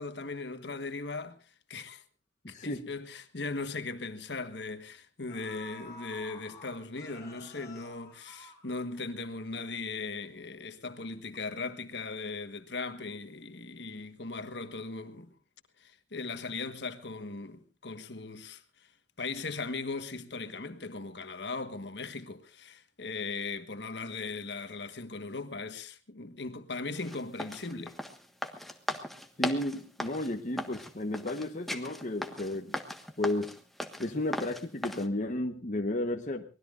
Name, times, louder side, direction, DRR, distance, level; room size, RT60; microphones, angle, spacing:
voice 1, 0.0-1.4 1.7-2.0 2.5-15.3 15.8-18.9 19.2-28.0, left 3 dB, 65° left, 1.4 m, -38 dB
voice 2, 2.4-2.8 29.4-32.7 33.2-33.5 34.0-36.4, left 1 dB, 40° left, 1.1 m, -33 dB
sound 1, 5.3-9.2 9.5-9.6, left 3 dB, 20° left, 5.9 m, -50 dB
sound 2, 27.0-35.1, equal, ahead, 1.4 m, -38 dB
24.0 x 19.5 x 2.5 m
head